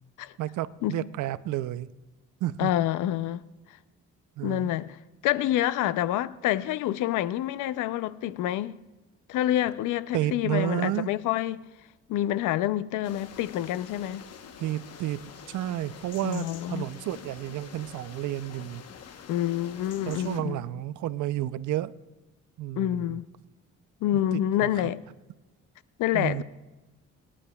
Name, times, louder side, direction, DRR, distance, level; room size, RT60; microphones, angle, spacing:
voice 1, 0.4-1.9 2.4-2.7 4.4-4.7 10.1-11.1 14.6-15.2 15.5-18.8 20.1-21.9 22.6-23.2 24.3-24.9 26.1-26.4, right 14 dB, 75° right, 0.5 m, -31 dB
voice 2, 2.6-3.4 4.4-5.0 5.2-8.8 9.3-11.6 12.1-14.3 16.2-16.9 19.3-20.6 22.8-23.3 24.0-25.0 26.0-26.4, left 13 dB, 90° left, 0.5 m, -27 dB
sound 1, 13.0-20.4, left 7 dB, 55° left, 1.0 m, -46 dB
28.5 x 10.0 x 2.3 m
cardioid pair, 90°, 30 cm